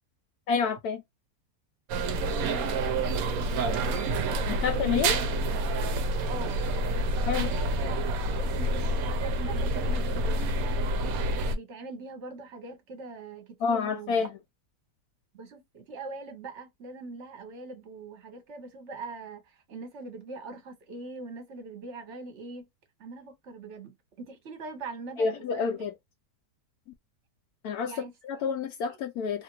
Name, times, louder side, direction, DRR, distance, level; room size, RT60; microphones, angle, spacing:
voice 1, 0.5-1.0 4.5-5.2 7.3-7.5 13.6-14.3 25.2-25.9 27.6-27.9 28.2-29.4, left 5 dB, 70° left, 1.0 m, -28 dB
sound 1, 1.9-11.5, right 1 dB, 70° right, 0.9 m, -28 dB
voice 2, 2.4-5.3 6.3-6.6 7.3-8.0 8.4-10.6 11.3-14.3 15.3-22.7 23.0-25.8 27.8-28.4, right 3 dB, 50° right, 1.1 m, -42 dB
2.8 x 2.6 x 2.9 m
omnidirectional pair, 1.8 m